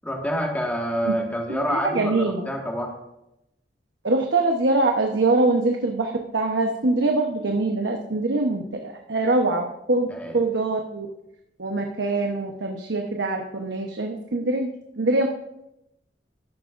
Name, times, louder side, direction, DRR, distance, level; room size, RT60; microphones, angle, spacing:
voice 1, 0.0-2.9 10.1-10.4, equal, 10° left, 0 dB, 1.8 m, -27 dB
voice 2, 1.5-2.5 4.0-10.1 10.3-11.1 11.6-14.7 15.0-15.3, right 2 dB, 80° right, 2 dB, 1.0 m, -23 dB
14.0 x 11.0 x 2.6 m, 0.85 s
head